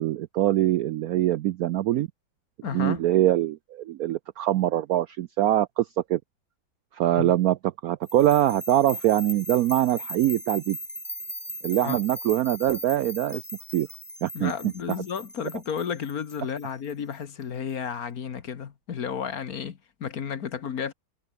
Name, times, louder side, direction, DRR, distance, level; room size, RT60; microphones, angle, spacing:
voice 1, 0.0-2.1 2.7-6.2 6.9-7.6 7.8-10.8 11.6-13.4 13.7-13.9 14.2-14.5, right 13 dB, 90° right, 0.8 m, -23 dB
voice 2, 2.6-3.0 7.1-7.3 11.8-12.0 14.3-20.9, left 7 dB, 50° left, 1.6 m, -32 dB
sound 1, 8.1-17.1, equal, 5° left, 3.9 m, -39 dB
omnidirectional pair, 2.1 m